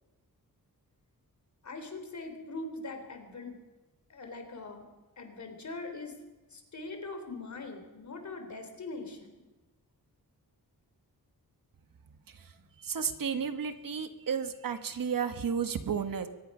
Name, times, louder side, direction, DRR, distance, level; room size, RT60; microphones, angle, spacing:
voice 1, 1.6-3.6 4.1-4.9 5.2-6.2 6.5-9.5, left 3 dB, 50° left, 6 dB, 3.7 m, -42 dB
voice 2, 12.8-16.3, right 7 dB, 65° right, 8 dB, 1.4 m, -32 dB
23.5 x 20.0 x 5.6 m, 1.1 s
wide cardioid pair, 165°, 37 cm